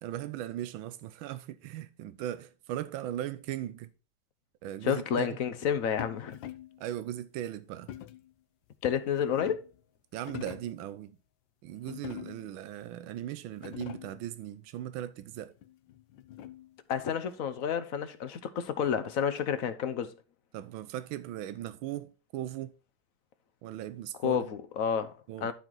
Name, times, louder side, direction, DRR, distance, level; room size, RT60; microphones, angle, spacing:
voice 1, 0.0-3.9 4.6-5.4 6.8-7.9 10.1-11.2 11.6-15.5 20.5-22.7 23.6-24.5 25.3-25.5, right 12 dB, 90° right, 1.4 m, -38 dB
voice 2, 4.8-6.4 8.8-9.7 16.9-20.1 24.2-25.5, left 8 dB, 60° left, 0.9 m, -30 dB
sound 1, 6.0-6.8 7.9-8.3 9.0-9.8 10.2-10.8 11.9-12.6 13.2-13.3 13.5-14.2 15.6-16.8, left 12 dB, 75° left, 1.4 m, -44 dB
12.0 x 4.6 x 3.8 m
omnidirectional pair, 2.1 m